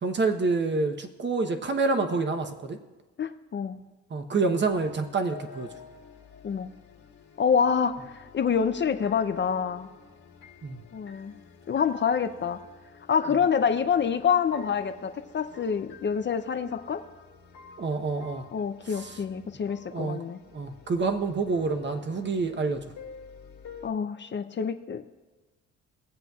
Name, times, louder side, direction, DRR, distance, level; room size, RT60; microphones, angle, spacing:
voice 1, 0.0-2.8 4.1-5.7 10.6-10.8 17.8-18.4 18.9-19.2 19.9-20.2 20.5-22.8, right 3 dB, 35° right, 6 dB, 1.0 m, -27 dB
voice 2, 3.2-3.8 6.4-6.7 7.4-9.9 10.9-11.3 11.7-12.6 13.1-17.0 18.5-20.4 23.8-25.0, left 6 dB, 40° left, 8 dB, 0.6 m, -27 dB
sound 1, 4.6-23.9, left 5 dB, 65° left, 1.9 m, -49 dB
22.0 x 7.6 x 2.4 m, 1.2 s
cardioid pair, 90°, 30 cm